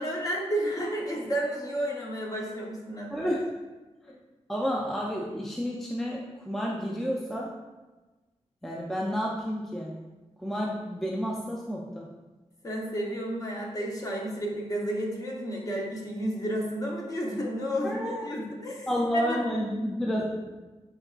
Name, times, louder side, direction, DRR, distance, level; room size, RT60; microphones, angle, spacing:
voice 1, 0.0-3.3 12.6-18.9 19.1-19.4, equal, 30° left, -1 dB, 0.7 m, -31 dB
voice 2, 3.1-3.4 4.5-7.5 8.6-10.0 10.4-12.1 17.8-18.3 18.9-20.6, equal, 5° left, -3 dB, 0.3 m, -30 dB
4.4 x 3.5 x 2.3 m, 1.2 s
wide cardioid pair, 155°, 11 cm